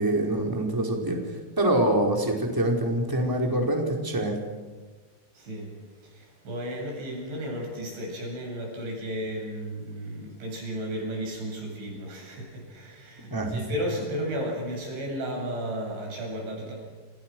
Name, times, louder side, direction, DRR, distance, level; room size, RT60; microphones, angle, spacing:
voice 1, 0.0-4.4 13.3-13.6, right 1 dB, 5° right, 1 dB, 4.1 m, -25 dB
voice 2, 5.4-5.7 6.0-16.7, equal, 80° right, 0 dB, 10.5 m, -34 dB
29.0 x 29.0 x 6.3 m, 1.3 s
omnidirectional pair, 5.2 m